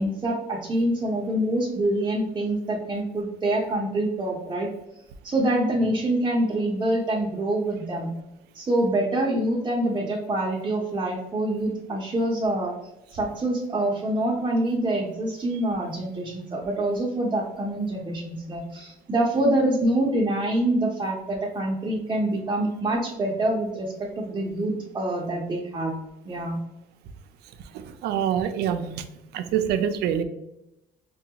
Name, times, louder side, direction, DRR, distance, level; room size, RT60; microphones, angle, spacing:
voice 1, 0.0-4.7 5.2-8.1 8.5-12.7 13.1-25.9 26.3-26.6, right 1 dB, 25° right, -3 dB, 0.7 m, -26 dB
voice 2, 27.7-29.0 29.3-30.2, right 9 dB, 75° right, 9 dB, 0.4 m, -25 dB
4.7 x 2.3 x 2.8 m, 0.87 s
cardioid pair, 110°, 17 cm